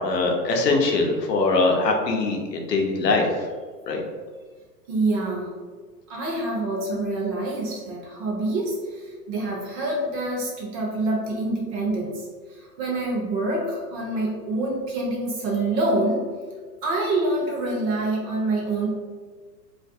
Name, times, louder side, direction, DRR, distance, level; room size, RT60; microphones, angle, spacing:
voice 1, 0.0-3.3 3.9-4.0, left 3 dB, 80° left, 2 dB, 0.7 m, -22 dB
voice 2, 4.9-5.5 6.1-16.3 16.8-18.9, right 2 dB, 30° right, -2 dB, 0.6 m, -26 dB
2.5 x 2.2 x 2.5 m, 1.5 s
hypercardioid pair, 110°, 48 cm